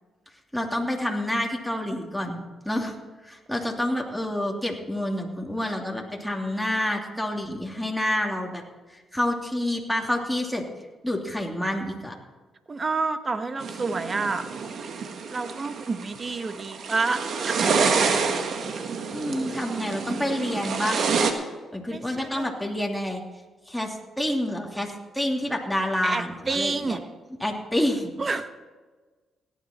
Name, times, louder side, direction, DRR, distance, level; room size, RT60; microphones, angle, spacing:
voice 1, 0.5-2.9 3.2-8.6 8.9-10.7 11.0-12.2 19.1-21.0 21.7-23.2 23.7-27.0 27.4-28.1, left 1 dB, ahead, 0 dB, 2.7 m, -28 dB
voice 2, 12.7-14.4 15.3-17.6 21.9-22.5 26.0-27.0 28.2-28.5, right 3 dB, 40° right, 10 dB, 1.2 m, -29 dB
sound 1, 13.6-21.3, right 5 dB, 65° right, 1.5 m, -27 dB
17.0 x 10.5 x 4.3 m, 1.3 s
supercardioid pair, 55°, 0 cm